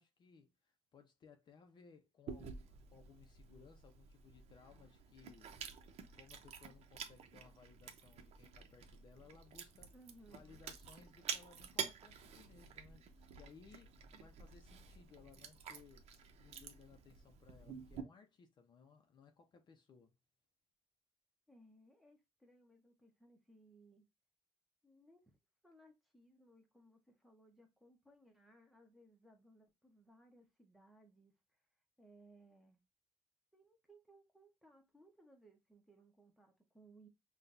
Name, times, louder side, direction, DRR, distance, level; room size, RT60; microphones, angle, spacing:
voice 1, 0.0-5.6 6.1-9.9 10.3-20.1, left 5 dB, 40° left, 0.6 m, -62 dB
Chewing mastication, 2.3-18.0, right 7 dB, 70° right, 0.8 m, -50 dB
voice 2, 9.9-10.6 14.1-14.3 21.5-24.1 24.8-25.2 25.6-31.3 32.0-32.8 33.5-37.1, right 1 dB, ahead, 0.9 m, -64 dB
5.8 x 2.3 x 2.6 m
cardioid pair, 175°, 11 cm